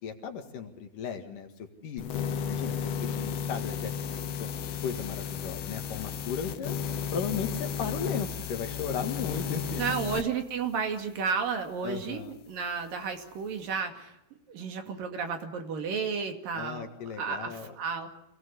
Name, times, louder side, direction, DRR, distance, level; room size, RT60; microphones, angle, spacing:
voice 1, 0.0-2.1 2.5-2.8 3.0-4.5 4.8-6.8 7.1-9.8 11.8-12.3 16.5-17.8, left 6 dB, 65° left, 5 dB, 3.4 m, -36 dB
sound 1, 2.0-10.3, left 7 dB, 85° left, 3.3 m, -33 dB
voice 2, 9.8-14.1 14.5-16.9 17.2-18.1, right 6 dB, 65° right, 5 dB, 4.0 m, -32 dB
27.0 x 18.5 x 8.2 m, 0.85 s
omnidirectional pair, 4.3 m